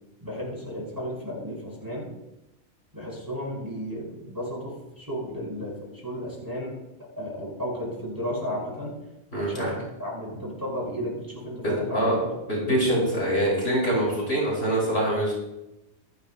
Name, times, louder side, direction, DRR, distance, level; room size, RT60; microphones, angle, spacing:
voice 1, 0.2-2.1 2.9-6.8 7.2-8.9 9.3-12.7 13.0-13.3, equal, 15° right, -5 dB, 5.9 m, -34 dB
voice 2, 9.3-9.7 11.6-12.2 12.5-15.3, right 1 dB, 45° left, -5 dB, 6.2 m, -24 dB
27.0 x 10.5 x 2.3 m, 0.93 s
omnidirectional pair, 1.5 m